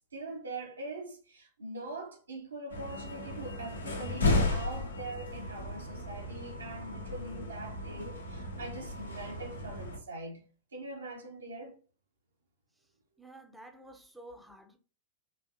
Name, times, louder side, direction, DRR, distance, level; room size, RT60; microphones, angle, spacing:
voice 1, 0.1-10.4 10.7-11.8, right 2 dB, 75° right, 1.1 m, -42 dB
sound 1, 2.7-10.0, left 2 dB, 75° left, 0.9 m, -34 dB
voice 2, 13.2-14.8, right 1 dB, 5° right, 0.7 m, -51 dB
4.4 x 3.4 x 2.7 m
figure-of-eight pair, 90°, 0 cm